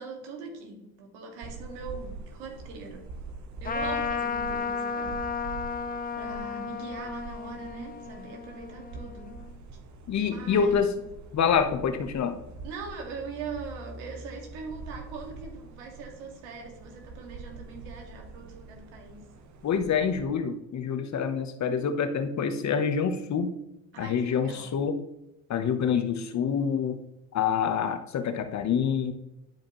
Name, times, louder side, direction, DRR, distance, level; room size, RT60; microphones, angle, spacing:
voice 1, 0.0-3.0 3.6-5.2 6.2-9.3 10.2-11.0 12.6-19.2 23.9-24.8, right 4 dB, 80° right, 2 dB, 2.1 m, -41 dB
sound 1, 1.4-20.2, right 3 dB, 45° right, 1.1 m, -44 dB
Trumpet, 3.6-9.5, left 5 dB, 20° left, 0.7 m, -33 dB
voice 2, 10.1-10.9 11.3-12.3 19.6-23.5 24.0-25.0 25.5-27.0 27.3-29.1, left 7 dB, 45° left, 8 dB, 1.0 m, -26 dB
10.5 x 4.9 x 3.1 m, 0.88 s
supercardioid pair, 75°, 39 cm